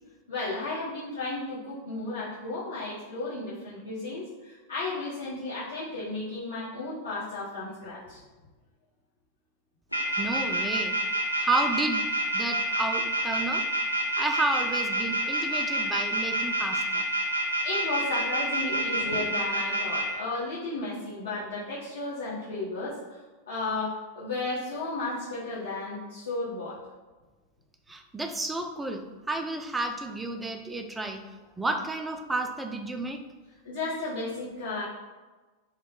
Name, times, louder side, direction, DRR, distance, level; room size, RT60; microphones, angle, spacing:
voice 1, 0.3-8.2 17.6-23.2 23.5-26.8 33.6-34.8, left 2 dB, 75° left, -12 dB, 1.1 m, -34 dB
sound 1, 9.9-20.0, right 2 dB, 90° left, 0.5 m, -27 dB
voice 2, 10.2-11.0 11.4-12.0 12.3-13.6 14.2-17.1 27.9-31.2 31.6-33.2, right 2 dB, 10° right, 5 dB, 0.3 m, -31 dB
3.0 x 2.1 x 3.9 m, 1.2 s
figure-of-eight pair, 90°, 0 cm